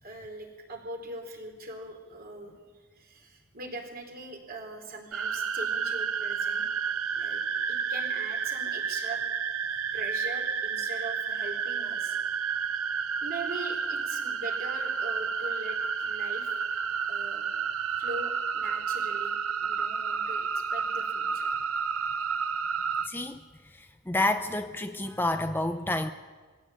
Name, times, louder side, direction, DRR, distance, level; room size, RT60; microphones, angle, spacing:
voice 1, 0.0-2.5 2.9-6.8 7.1-9.2 9.9-12.2 13.2-16.5 17.1-17.5 18.0-19.3 19.6-21.5, right 2 dB, 45° right, 2 dB, 4.4 m, -41 dB
sound 1, 5.1-23.1, right 6 dB, 75° right, 0.9 m, -31 dB
voice 2, 23.0-23.4 24.1-26.1, left 2 dB, 10° left, 7 dB, 0.7 m, -29 dB
22.5 x 16.0 x 8.8 m, 1.4 s
head